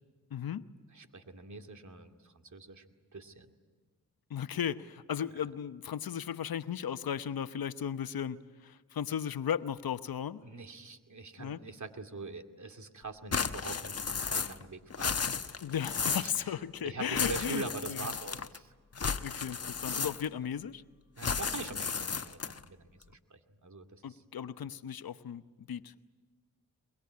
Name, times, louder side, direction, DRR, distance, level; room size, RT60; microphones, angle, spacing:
voice 1, 0.3-0.7 4.3-10.4 11.4-11.6 15.6-18.1 19.2-20.8 24.0-26.1, left 8 dB, 75° left, 12 dB, 1.0 m, -36 dB
voice 2, 0.9-2.8 3.1-3.5 10.4-15.4 16.0-16.3 16.8-18.7 21.2-24.2, right 3 dB, 50° right, 5 dB, 2.5 m, -44 dB
sound 1, 13.3-14.7 14.9-16.4 17.1-18.6 19.0-20.4 21.2-22.6, left 5 dB, 40° left, 1.1 m, -34 dB
23.5 x 22.5 x 9.6 m, 1.3 s
cardioid pair, 55°, 36 cm